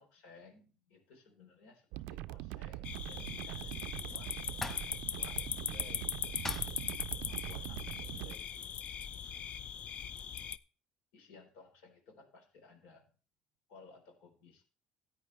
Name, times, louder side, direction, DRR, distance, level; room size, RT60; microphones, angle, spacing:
voice 1, 0.0-4.3 4.6-6.1 7.5-8.8 11.1-13.1 13.7-14.6, left 4 dB, 90° left, 4 dB, 4.0 m, -58 dB
sound 1, 1.9-8.3, right 16 dB, 85° right, 0.4 m, -43 dB
sound 2, 2.8-10.6, left 8 dB, 55° left, 0.5 m, -40 dB
sound 3, 3.5-8.8, left 1 dB, 10° left, 1.8 m, -50 dB
14.0 x 9.3 x 3.3 m, 0.37 s
cardioid pair, 95°, 3 cm